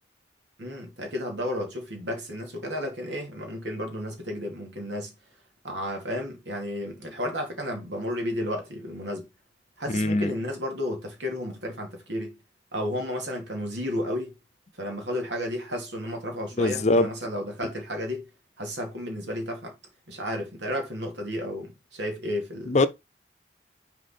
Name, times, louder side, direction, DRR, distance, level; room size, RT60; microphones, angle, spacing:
voice 1, 0.6-5.1 5.6-9.3 9.8-12.4 12.7-14.3 14.8-18.2 18.6-19.8 20.1-22.9, left 1 dB, 85° right, 2.6 m, -32 dB
voice 2, 9.9-10.3 16.6-17.1 22.7-22.9, left 2 dB, 40° left, 0.7 m, -22 dB
6.3 x 4.5 x 4.4 m
head